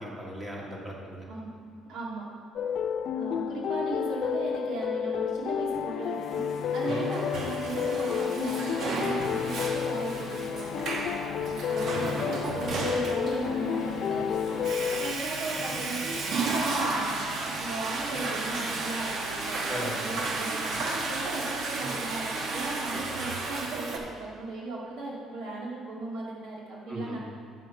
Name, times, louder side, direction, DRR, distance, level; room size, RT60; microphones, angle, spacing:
voice 1, 0.0-1.3 6.8-7.1 11.9-12.2 19.7-20.0 22.9-23.2 26.9-27.2, equal, 20° right, -3 dB, 1.8 m, -38 dB
voice 2, 1.9-2.3 3.1-12.2 12.5-27.2, right 2 dB, 70° right, -4 dB, 1.9 m, -37 dB
sound 1, 2.6-15.1, left 8 dB, 50° left, 0.3 m, -31 dB
Water / Toilet flush, 6.5-24.0, right 3 dB, 55° right, 1.1 m, -33 dB
8.3 x 6.1 x 5.2 m, 2.2 s
cardioid pair, 135°, 0 cm